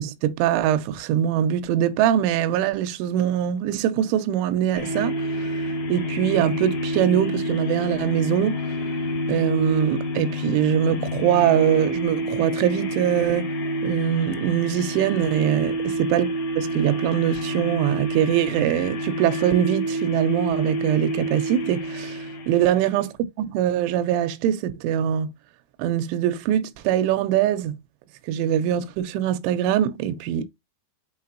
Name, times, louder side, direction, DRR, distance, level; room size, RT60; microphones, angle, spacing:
voice 1, 0.0-5.6 5.9-8.6 9.3-13.5 13.8-23.0 23.4-25.3 25.8-27.8 28.3-30.4, right 10 dB, 85° right, 3.2 m, -23 dB
sound 1, 4.7-23.0, equal, 65° left, 1.6 m, -28 dB
8.7 x 4.4 x 2.8 m
omnidirectional pair, 5.6 m